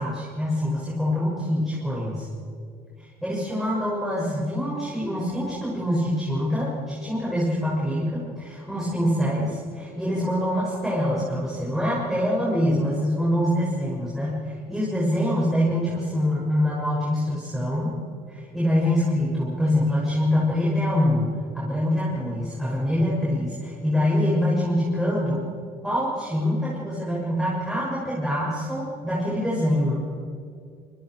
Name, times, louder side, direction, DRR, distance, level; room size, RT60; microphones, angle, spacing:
voice 1, 0.0-2.3 3.2-17.9 18.3-21.3 21.5-25.4 25.8-30.0, left 1 dB, ahead, -7 dB, 6.8 m, -25 dB
26.0 x 24.5 x 4.8 m, 2.4 s
cardioid pair, 110°, 17 cm